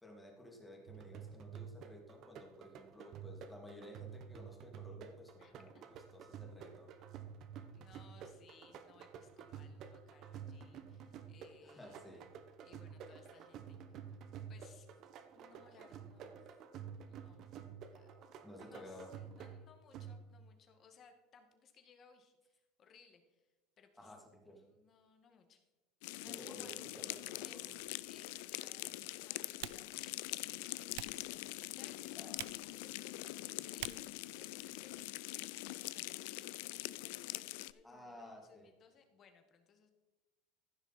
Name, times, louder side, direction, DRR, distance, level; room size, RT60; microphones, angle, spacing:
voice 1, 0.0-6.9 11.6-12.3 18.4-19.1 24.0-24.6 26.2-27.7 32.2-32.5 37.8-38.7, left 1 dB, 10° left, 1 dB, 2.4 m, -54 dB
sound 1, 0.9-20.5, right 7 dB, 50° right, 1.0 m, -51 dB
voice 2, 5.4-5.9 7.7-12.0 12.6-14.2 14.5-15.0 15.3-16.6 17.1-17.5 17.9-18.2 18.6-24.1 24.5-25.7 26.2-27.8 28.1-39.9, left 6 dB, 35° left, 6 dB, 1.6 m, -64 dB
sound 2, 26.0-37.7, left 18 dB, 75° left, 0.3 m, -44 dB
Typing, 27.8-35.3, right 19 dB, 75° right, 0.3 m, -53 dB
15.0 x 6.2 x 4.2 m, 1.1 s
supercardioid pair, 125°, 0 cm